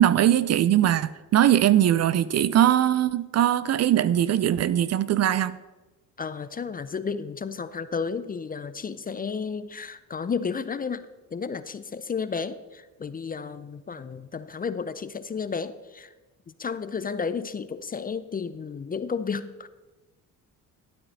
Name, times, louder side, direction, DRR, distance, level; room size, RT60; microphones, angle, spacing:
voice 1, 0.0-5.6, right 11 dB, 45° right, 0.5 m, -21 dB
voice 2, 6.2-16.1 16.6-19.7, left 5 dB, 25° left, 0.5 m, -32 dB
12.0 x 9.0 x 4.1 m
cardioid pair, 85°, 36 cm